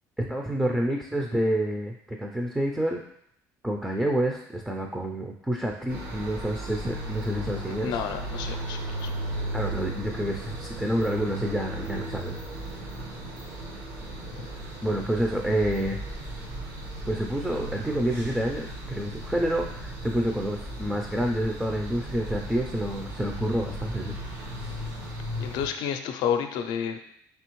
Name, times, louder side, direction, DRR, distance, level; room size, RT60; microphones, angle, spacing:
voice 1, 0.2-3.0 3.6-7.9 9.5-12.4 14.8-16.0 17.1-24.1, right 1 dB, 5° right, 1 dB, 0.4 m, -28 dB
sound 1, 5.9-25.7, right 1 dB, 70° right, 1.2 m, -36 dB
voice 2, 7.7-9.1 25.4-27.0, left 8 dB, 75° left, 7 dB, 0.5 m, -30 dB
4.9 x 3.4 x 3.0 m, 0.69 s
cardioid pair, 120°, 7 cm